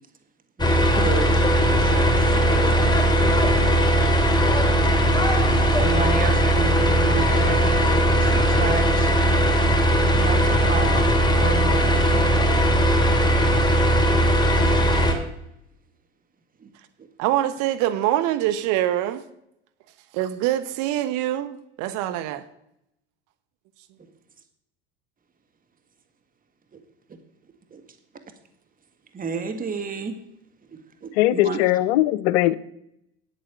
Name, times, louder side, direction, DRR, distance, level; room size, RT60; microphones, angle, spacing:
sound 1, 0.6-15.1, right 1 dB, 15° left, 2.7 m, -19 dB
voice 1, 0.6-2.4 2.8-2.9 5.7-7.8 8.1-9.1 10.2-11.1 11.4-12.1 16.6-16.7 17.0-17.1 26.7-26.8 27.7-27.8 29.1-30.2 31.0-31.6, right 5 dB, 25° right, 1.7 m, -31 dB
voice 2, 17.2-19.2 20.1-22.4, right 13 dB, 65° right, 1.0 m, -24 dB
voice 3, 31.2-32.5, left 15 dB, 75° left, 0.7 m, -20 dB
9.3 x 8.7 x 8.1 m
hypercardioid pair, 85°, 33 cm